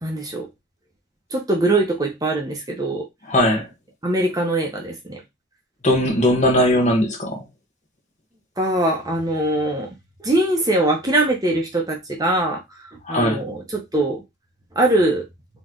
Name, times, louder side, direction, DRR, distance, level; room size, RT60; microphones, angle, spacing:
voice 1, 0.0-0.5 1.3-3.1 4.0-5.2 8.6-9.9 10.2-12.8 13.1-14.2 14.7-15.2, right 1 dB, 20° right, 0.8 m, -22 dB
voice 2, 3.3-3.7 5.8-7.4 13.0-13.4, left 1 dB, 35° left, 1.3 m, -19 dB
4.1 x 3.0 x 3.8 m
head